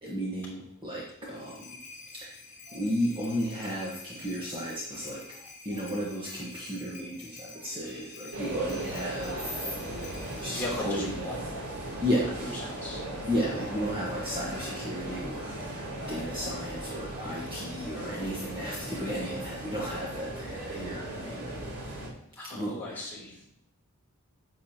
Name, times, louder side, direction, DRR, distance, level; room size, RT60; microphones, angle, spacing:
voice 1, 0.0-1.7 2.1-2.4 2.7-9.7 10.4-11.1 12.0-12.5 13.3-21.5 22.5-23.1, equal, 20° right, -5 dB, 1.4 m, -34 dB
sound 1, 1.1-10.7, left 3 dB, 30° left, 2.6 m, -48 dB
sound 2, 8.3-22.1, right 1 dB, 75° right, 3.0 m, -37 dB
voice 2, 10.5-11.5 12.5-13.0 22.3-23.5, left 2 dB, 10° left, -6 dB, 3.2 m, -38 dB
10.5 x 7.8 x 2.9 m, 0.76 s
head